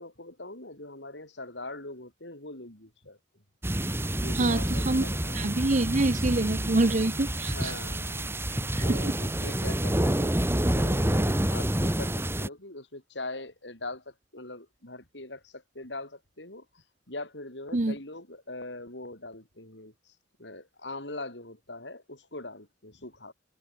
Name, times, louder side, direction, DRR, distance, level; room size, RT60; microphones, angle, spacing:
voice 1, 0.0-3.2 4.2-5.9 7.5-23.3, left 2 dB, 70° left, 7.7 m, -42 dB
sound 1, 3.6-12.5, right 1 dB, 15° right, 1.5 m, -28 dB
voice 2, 4.3-5.0 5.3-7.7 8.8-9.0 17.7-17.9, right 2 dB, 45° right, 0.9 m, -26 dB
head